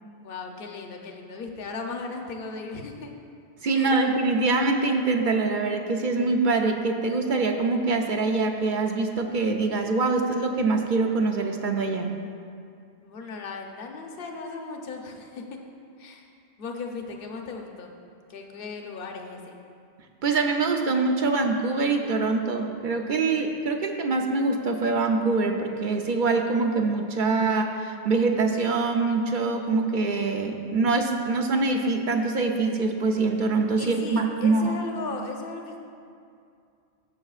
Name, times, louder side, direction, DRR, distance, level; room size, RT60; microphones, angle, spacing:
voice 1, 0.2-3.1 3.7-4.0 13.0-15.6 16.0-16.3 16.6-17.9 18.3-19.6 33.8-35.8, left 4 dB, 60° left, 3 dB, 1.0 m, -37 dB
voice 2, 3.6-12.1 20.2-34.8, right 3 dB, 50° right, 3 dB, 0.7 m, -24 dB
13.0 x 7.6 x 2.4 m, 2.4 s
omnidirectional pair, 1.1 m